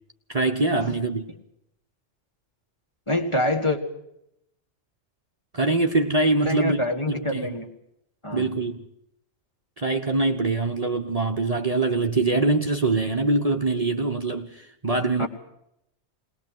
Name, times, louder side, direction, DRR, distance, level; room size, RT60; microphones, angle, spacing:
voice 1, 0.3-1.3 5.5-6.8 7.1-7.6 8.3-8.8 9.8-15.3, right 3 dB, 35° right, 1.2 m, -23 dB
voice 2, 3.1-3.8 6.4-7.7 8.2-8.4 15.2-15.3, left 1 dB, 25° left, 2.2 m, -25 dB
20.5 x 20.0 x 7.8 m
omnidirectional pair, 1.2 m